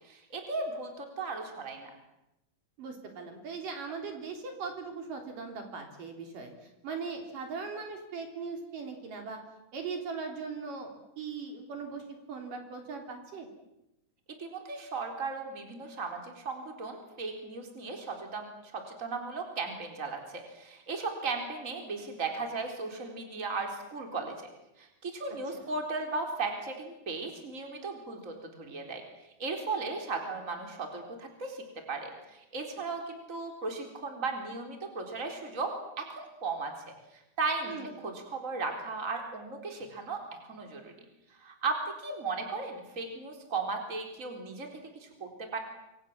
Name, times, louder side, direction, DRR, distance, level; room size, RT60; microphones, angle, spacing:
voice 1, 0.0-1.9 14.4-24.3 24.8-29.0 29.4-36.7 37.1-37.8 38.0-40.9 41.4-44.7 45.0-45.6, right 3 dB, 20° right, 3 dB, 4.1 m, -36 dB
voice 2, 2.8-9.4 9.7-10.9 11.2-13.5 25.5-25.6 37.6-38.0, right 5 dB, 65° right, 4 dB, 5.0 m, -39 dB
27.0 x 25.5 x 7.4 m, 0.90 s
omnidirectional pair, 4.2 m